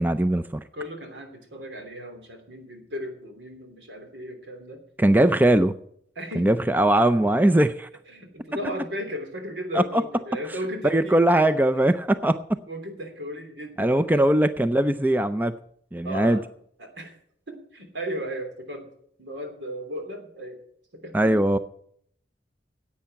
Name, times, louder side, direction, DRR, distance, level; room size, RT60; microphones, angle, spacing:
voice 1, 0.0-0.6 5.0-5.7 6.4-7.9 9.7-10.0 10.9-12.6 13.8-15.5 15.9-16.4 21.1-21.6, right 1 dB, 10° right, 12 dB, 0.4 m, -20 dB
voice 2, 0.7-4.8 6.1-6.5 8.1-11.2 12.7-14.3 16.0-16.4 16.8-17.1 17.5-18.9 19.2-20.6 21.0-21.3, equal, 80° right, 4 dB, 3.1 m, -35 dB
10.5 x 8.5 x 9.1 m, 0.66 s
head